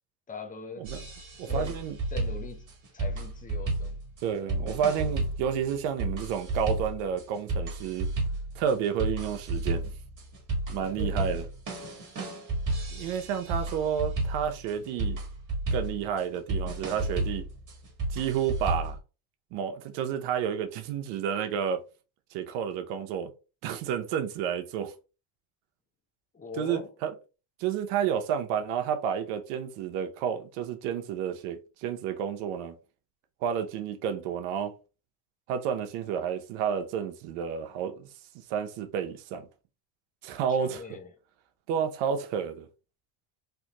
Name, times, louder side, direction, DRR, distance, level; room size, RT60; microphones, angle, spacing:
voice 1, 0.3-0.9 1.5-1.8 2.1-2.6 2.9-4.0 10.8-11.5 26.3-26.9 40.3-41.1, left 4 dB, 15° left, 0.7 m, -41 dB
sound 1, 0.8-19.0, right 2 dB, 40° right, 1.5 m, -32 dB
voice 2, 1.4-1.9 4.2-8.1 8.6-9.9 10.7-11.4 12.9-15.2 15.7-17.5 18.1-19.0 19.5-21.8 22.3-23.3 23.6-24.9 26.6-27.1 27.6-32.7 33.4-34.7 35.5-38.1 38.5-39.5 40.2-40.8 41.7-42.7, right 8 dB, 80° right, 0.8 m, -30 dB
3.5 x 2.6 x 2.8 m
supercardioid pair, 105°, 47 cm